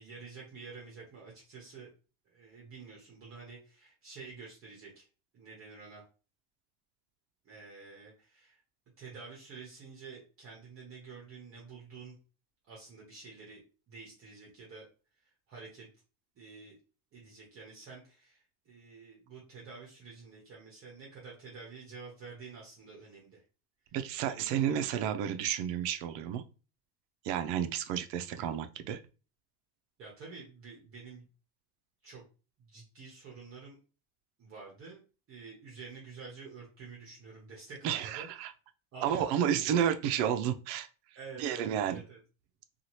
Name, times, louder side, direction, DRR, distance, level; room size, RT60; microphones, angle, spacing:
voice 1, 0.0-1.9 2.2-5.1 5.3-6.0 7.4-8.6 9.0-12.2 12.7-14.9 15.2-15.9 16.3-16.8 17.1-23.4 24.2-25.0 30.0-31.3 32.0-32.2 32.6-33.8 34.4-35.0 35.3-38.3 38.9-39.7 41.1-42.2, right 4 dB, 30° right, -3 dB, 0.8 m, -49 dB
voice 2, 23.9-26.4 27.2-29.0 37.8-38.5 39.0-40.9 41.4-42.0, right 9 dB, 70° right, 9 dB, 0.5 m, -31 dB
2.7 x 2.4 x 2.9 m, 0.34 s
cardioid pair, 175°, 43 cm